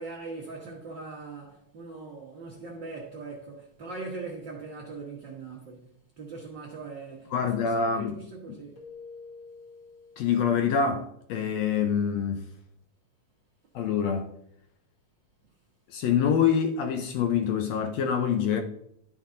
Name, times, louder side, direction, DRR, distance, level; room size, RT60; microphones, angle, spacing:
voice 1, 0.0-8.8, right 3 dB, 75° right, 1.0 m, -41 dB
voice 2, 7.3-8.2 10.2-12.5 13.7-14.4 15.9-18.6, left 7 dB, 85° left, 1.5 m, -26 dB
Keyboard (musical), 8.8-10.8, left 4 dB, 60° left, 2.0 m, -48 dB
12.0 x 4.7 x 3.8 m
omnidirectional pair, 3.8 m